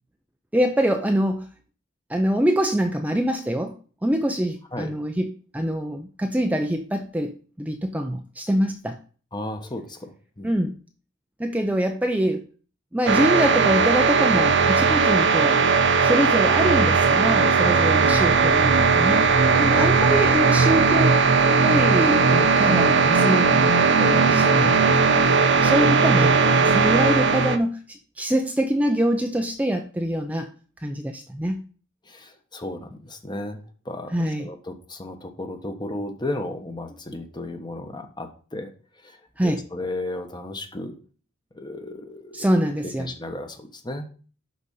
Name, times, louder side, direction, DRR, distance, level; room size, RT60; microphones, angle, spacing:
voice 1, 0.5-1.5 2.1-3.8 4.0-9.0 10.4-10.7 11.4-12.4 12.9-15.6 16.0-21.2 21.6-25.1 25.6-30.5 30.8-31.6 34.1-34.5 39.4-39.6 42.3-43.1, equal, 10° right, 4 dB, 0.6 m, -24 dB
voice 2, 9.3-10.5 17.6-17.8 19.4-19.7 25.5-25.7 32.0-40.9 41.5-44.1, left 1 dB, 20° left, 6 dB, 1.3 m, -34 dB
sound 1, 13.1-27.6, right 4 dB, 65° right, 0.9 m, -18 dB
11.0 x 4.1 x 5.6 m, 0.40 s
head